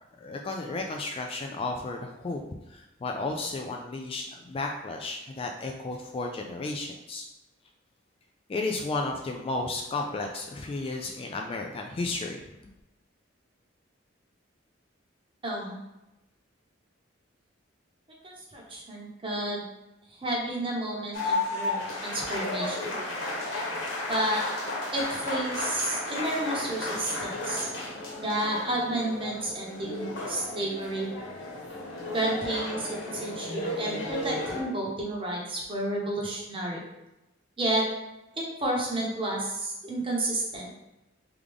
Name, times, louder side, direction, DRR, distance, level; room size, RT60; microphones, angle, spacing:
voice 1, 0.2-2.4 2.7-7.3 8.5-12.4, left 3 dB, 30° left, 2 dB, 0.3 m, -33 dB
voice 2, 15.4-15.8 18.2-19.6 20.2-23.0 24.1-24.4 24.9-27.7 28.2-31.1 32.1-36.8 37.6-37.9 38.4-40.7, right 1 dB, 25° right, -2 dB, 0.9 m, -31 dB
sound 1, 21.1-34.6, left 2 dB, 70° left, 1.2 m, -33 dB
3.6 x 3.5 x 3.5 m, 0.95 s
head